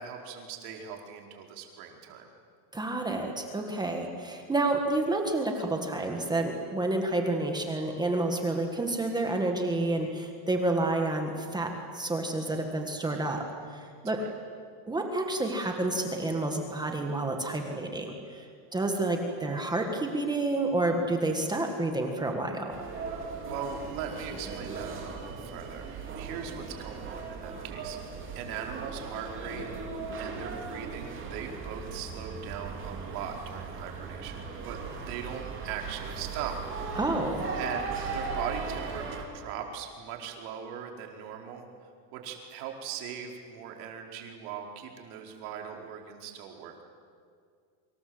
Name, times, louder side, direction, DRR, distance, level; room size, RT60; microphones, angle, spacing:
voice 1, 0.0-2.3 14.2-14.3 23.4-25.9 26.1-28.0 28.3-29.7 30.2-34.8 35.1-37.0 37.6-41.6 42.1-46.8, right 7 dB, 65° right, 2 dB, 4.8 m, -40 dB
voice 2, 2.7-13.4 13.7-14.2 14.9-18.5 18.7-22.8 37.0-37.5, right 2 dB, 10° right, 3 dB, 1.8 m, -29 dB
sound 1, 22.7-39.2, right 4 dB, 25° right, 3.9 m, -38 dB
28.0 x 25.5 x 8.0 m, 2.2 s
cardioid pair, 180°, 49 cm